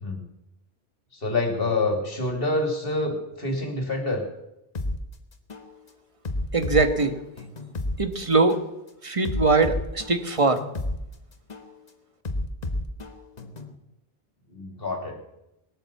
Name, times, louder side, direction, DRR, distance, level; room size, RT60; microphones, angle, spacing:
voice 1, 1.1-4.2 14.5-15.2, left 2 dB, 65° left, 3 dB, 3.0 m, -27 dB
sound 1, 4.7-5.0 5.5-5.7 6.2-8.0 8.5-8.7 9.2-11.0 11.5-11.7 12.2-13.7, left 1 dB, 40° left, 1.3 m, -31 dB
voice 2, 6.5-7.1 8.0-8.6 9.0-10.6, right 3 dB, 30° right, 8 dB, 1.4 m, -21 dB
20.0 x 9.1 x 7.2 m, 0.89 s
omnidirectional pair, 1.0 m